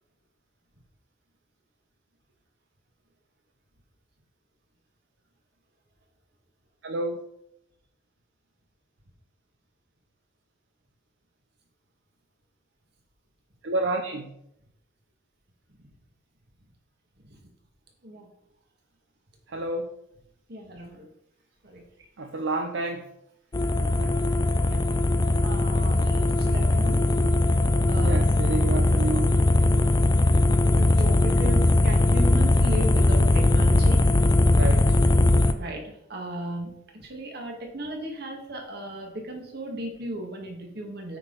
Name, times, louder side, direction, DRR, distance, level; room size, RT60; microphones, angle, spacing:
voice 1, 6.8-7.2 13.6-14.3 19.5-19.9 22.2-23.1 23.8-24.2 28.0-29.4 34.5-34.8, right 2 dB, 75° right, 4 dB, 0.7 m, -30 dB
voice 2, 20.5-21.0 21.6-21.8 24.6-24.8 25.4-27.0 27.9-28.3 29.6-29.7 30.7-34.0 35.5-41.2, right 1 dB, 55° right, 1 dB, 1.9 m, -36 dB
sound 1, 23.5-35.5, left 2 dB, 20° left, 0.4 m, -20 dB
8.8 x 5.6 x 4.0 m, 0.78 s
head